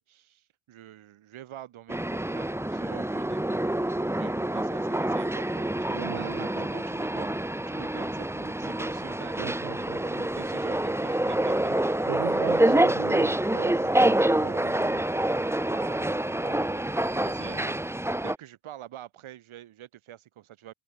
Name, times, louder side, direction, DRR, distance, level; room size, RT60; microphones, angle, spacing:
voice 1, 0.0-3.4 3.9-11.8 12.5-12.9 15.6-17.8 18.2-20.7, right 12 dB, 70° right, 5.7 m, -46 dB
sound 1, 1.9-18.4, right 1 dB, 5° right, 1.6 m, -27 dB
voice 2, 5.9-6.7 9.4-10.3 11.7-15.0, right 16 dB, 90° right, 3.4 m, -38 dB
cardioid pair, 115°, 50 cm